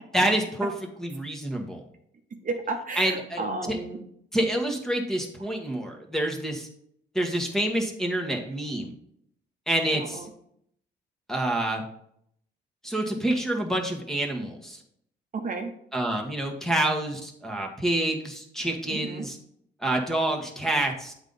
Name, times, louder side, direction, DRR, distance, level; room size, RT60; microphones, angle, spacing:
voice 1, 0.1-0.7 1.0-1.8 3.0-3.8 4.3-6.7 7.1-8.9 9.7-10.2 11.3-11.8 12.8-14.8 15.9-19.4 19.8-21.1, right 1 dB, ahead, 2 dB, 1.5 m, -27 dB
voice 2, 2.3-4.0 9.9-10.3 15.3-15.7 18.9-19.3, right 3 dB, 40° right, 3 dB, 1.0 m, -33 dB
8.0 x 4.0 x 5.5 m, 0.70 s
cardioid pair, 90°, 20 cm